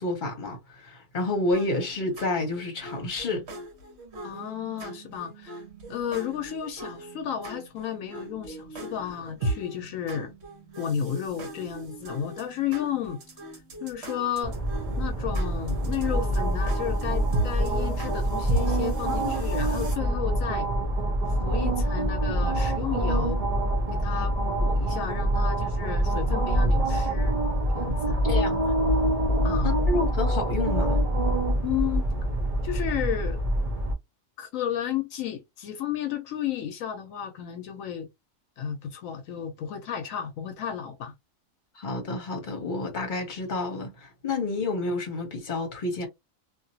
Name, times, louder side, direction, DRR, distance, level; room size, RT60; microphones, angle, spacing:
voice 1, 0.0-3.4 19.1-19.3 28.2-28.7 29.6-31.0 41.7-46.1, left 2 dB, 40° left, 1.1 m, -30 dB
sound 1, 1.5-20.0, right 2 dB, 55° right, 1.2 m, -38 dB
voice 2, 4.2-5.6 5.9-10.3 10.8-13.2 13.8-14.5 15.0-20.7 21.3-23.4 23.9-27.4 27.7-28.2 29.4-29.8 31.6-32.1 32.6-33.4 34.4-38.1 38.6-41.1, left 9 dB, 75° left, 1.0 m, -33 dB
sound 2, 14.4-33.9, right 1 dB, 35° right, 0.7 m, -25 dB
2.8 x 2.6 x 2.7 m
omnidirectional pair, 1.4 m